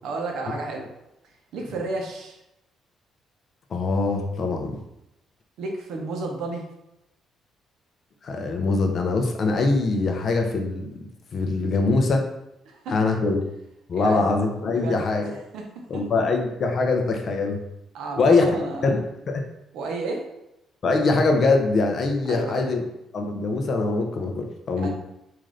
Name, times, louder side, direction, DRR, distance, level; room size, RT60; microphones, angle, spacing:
voice 1, 0.0-0.9 1.5-2.4 5.6-6.7 12.7-13.1 13.9-14.3 14.7-15.1 15.5-16.0 17.9-19.0 19.7-20.3 22.3-22.7 24.8-24.9, right 3 dB, 70° right, 2 dB, 0.7 m, -32 dB
voice 2, 3.7-4.8 8.2-10.9 11.3-12.3 12.9-13.4 13.9-15.3 15.9-17.6 18.2-18.5 18.8-19.0 19.3-19.4 20.8-22.8 23.1-24.9, left 3 dB, 35° left, 3 dB, 0.4 m, -23 dB
3.7 x 2.5 x 3.2 m, 0.86 s
cardioid pair, 175°, 0 cm